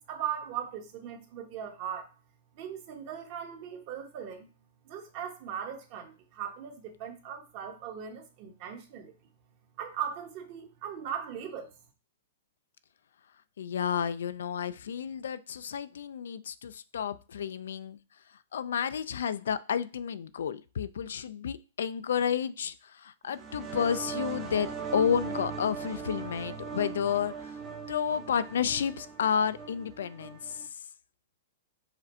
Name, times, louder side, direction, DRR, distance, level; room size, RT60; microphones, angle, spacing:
voice 1, 0.1-2.1 2.5-4.5 4.8-9.1 9.8-11.7, right 8 dB, 35° right, 4 dB, 1.0 m, -38 dB
voice 2, 13.6-18.0 18.5-27.5 27.9-30.6, left 8 dB, 80° left, 15 dB, 0.3 m, -31 dB
sound 1, 23.3-30.7, right 6 dB, 15° right, 0.7 m, -39 dB
4.9 x 2.5 x 4.3 m, 0.33 s
hypercardioid pair, 160°, 0 cm